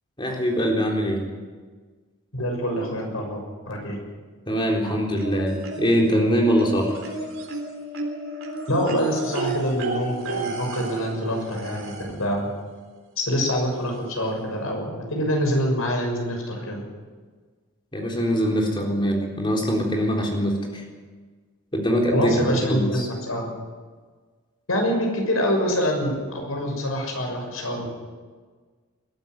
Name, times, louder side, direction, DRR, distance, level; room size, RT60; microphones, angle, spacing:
voice 1, 0.2-1.2 4.5-6.9 17.9-20.8 21.7-23.1, equal, 25° left, 0 dB, 3.9 m, -23 dB
voice 2, 2.3-4.0 8.7-12.5 13.2-16.8 22.1-23.5 24.7-27.9, equal, 80° left, 2 dB, 6.4 m, -25 dB
sound 1, 5.2-6.1 6.6-12.3 13.5-13.6 13.9-14.0, right 3 dB, 75° right, 3.9 m, -32 dB
21.0 x 12.5 x 9.5 m, 1.5 s
head